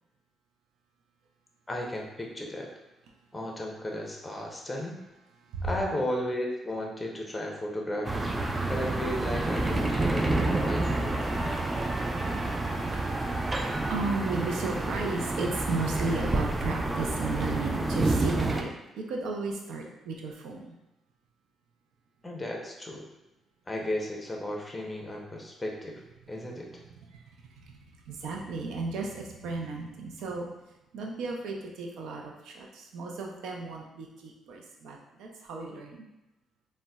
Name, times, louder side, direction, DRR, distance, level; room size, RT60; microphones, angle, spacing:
voice 1, 1.7-2.7 3.3-5.0 5.6-8.3 8.7-11.2 22.2-23.1 23.7-26.0 26.3-26.8, left 1 dB, 15° left, 0 dB, 0.6 m, -34 dB
sound 1, 8.0-18.6, right 2 dB, 20° right, 0.3 m, -29 dB
voice 2, 8.4-8.9 9.5-18.7 19.0-20.7 27.1-27.2 27.6-27.7 28.1-30.5 30.9-36.1, right 3 dB, 80° right, 0 dB, 0.5 m, -35 dB
3.9 x 2.1 x 2.3 m, 0.97 s
cardioid pair, 90°, 0 cm